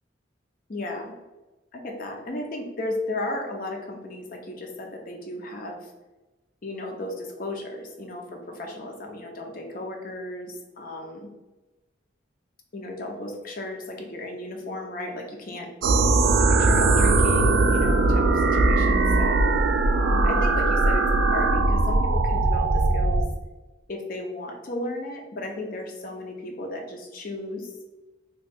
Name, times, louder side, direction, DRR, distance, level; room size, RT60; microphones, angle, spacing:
voice 1, 0.7-1.1 1.7-5.9 6.6-11.3 12.7-15.7 16.2-19.5 20.2-23.3 23.9-27.7, left 1 dB, 50° left, 2 dB, 0.6 m, -34 dB
sound 1, 15.8-23.3, right 2 dB, 85° right, 0.4 m, -20 dB
3.0 x 2.3 x 3.4 m, 1.1 s
head